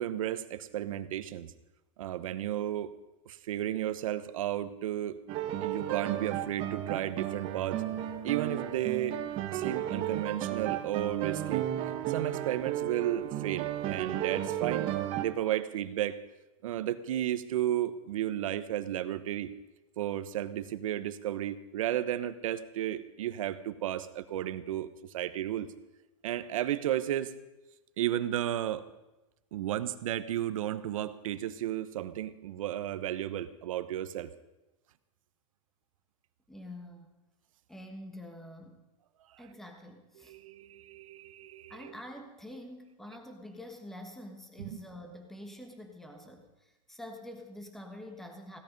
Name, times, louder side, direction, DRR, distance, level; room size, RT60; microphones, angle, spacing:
voice 1, 0.0-1.5 2.0-2.9 3.2-5.2 5.6-7.8 8.2-9.2 9.5-11.7 12.1-14.9 15.2-16.2 16.6-19.5 20.0-24.9 25.1-25.7 26.2-27.3 28.0-28.9 29.5-34.3 40.2-41.9 44.6-44.8, right 12 dB, 80° right, 12 dB, 1.0 m, -33 dB
sound 1, 5.3-15.3, right 12 dB, 30° right, 1.1 m, -34 dB
voice 2, 36.5-37.1 37.7-38.8 39.4-40.4 41.7-48.6, left 1 dB, ahead, 4 dB, 1.3 m, -46 dB
16.5 x 13.0 x 5.3 m, 1.0 s
supercardioid pair, 160°, 17 cm